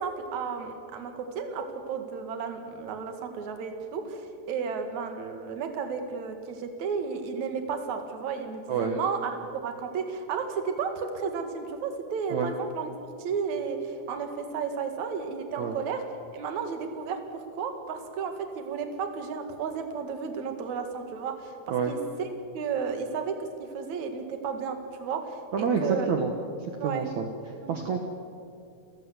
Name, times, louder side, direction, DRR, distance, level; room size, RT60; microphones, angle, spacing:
voice 1, 0.0-9.4 9.6-12.9 13.2-16.0 16.3-21.5 21.9-22.3 22.5-23.3 23.6-26.1 26.8-27.2 27.6-27.8, right 6 dB, 50° right, 6 dB, 2.5 m, -33 dB
voice 2, 25.5-26.3 26.8-27.3 27.7-28.0, right 6 dB, 80° right, 3 dB, 1.6 m, -27 dB
29.0 x 14.5 x 8.1 m, 2.5 s
omnidirectional pair, 5.5 m